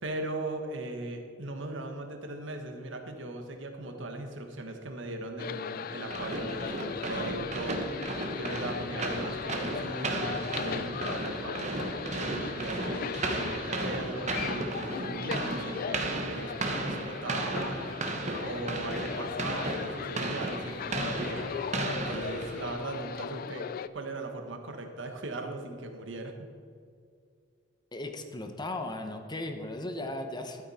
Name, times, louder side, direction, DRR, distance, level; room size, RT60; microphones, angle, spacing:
voice 1, 0.0-7.9 8.3-11.8 12.1-17.9 18.4-21.5 21.9-26.5, right 2 dB, 75° right, 5 dB, 1.3 m, -38 dB
sound 1, 5.4-23.9, left 7 dB, 50° left, 0.3 m, -38 dB
sound 2, 6.1-22.9, right 2 dB, 40° right, 1.1 m, -35 dB
voice 2, 27.9-30.6, left 2 dB, 20° left, 5 dB, 0.9 m, -36 dB
12.5 x 8.8 x 4.3 m, 2.2 s
head